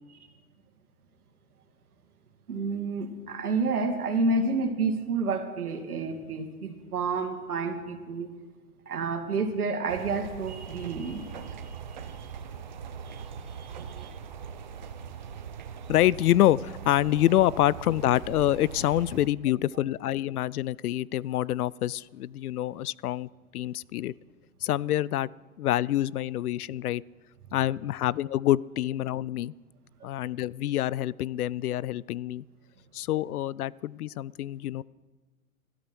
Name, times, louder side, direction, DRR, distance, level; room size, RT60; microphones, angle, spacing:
voice 1, 2.5-8.3 8.9-12.3 13.1-14.1, right 3 dB, 80° right, 5 dB, 2.5 m, -30 dB
sound 1, 9.9-19.3, right 7 dB, 30° right, 0.7 m, -41 dB
voice 2, 15.9-24.1 24.6-25.3 25.6-27.0 27.5-29.5 30.0-32.4 32.9-34.8, left 13 dB, 80° left, 23 dB, 0.5 m, -26 dB
12.5 x 11.5 x 6.2 m, 1.3 s
hypercardioid pair, 165°, 45 cm